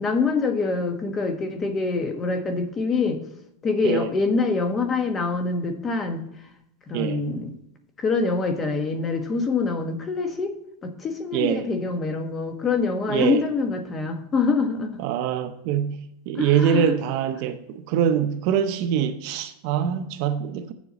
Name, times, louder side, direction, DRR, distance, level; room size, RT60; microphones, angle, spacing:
voice 1, 0.0-3.2 3.6-6.2 6.9-7.5 8.0-10.5 10.8-14.9 16.3-17.0, left 4 dB, 20° left, 1.2 m, -25 dB
voice 2, 11.3-11.6 13.1-13.4 15.0-16.0 16.3-20.7, right 9 dB, 50° right, 0.7 m, -24 dB
9.0 x 7.3 x 4.1 m
supercardioid pair, 155°, 0 cm